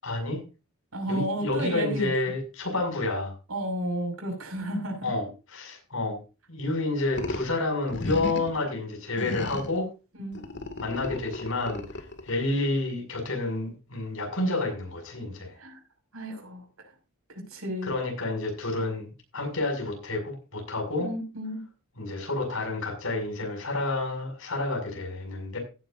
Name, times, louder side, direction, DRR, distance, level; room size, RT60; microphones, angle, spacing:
voice 1, 0.0-0.4 1.1-3.3 5.0-6.2 6.5-9.9 10.8-15.5 17.8-21.1 22.0-25.6, left 2 dB, 75° left, 2 dB, 6.4 m, -29 dB
voice 2, 0.9-2.1 3.5-5.1 10.1-10.4 15.6-15.8 16.1-16.6 17.3-17.9 21.0-21.6, right 1 dB, 80° right, 3 dB, 5.8 m, -32 dB
sound 1, 7.1-7.5 7.9-8.6 9.2-9.8 10.3-12.4, left 2 dB, 55° left, 2.2 m, -34 dB
16.5 x 10.5 x 2.6 m, 0.30 s
head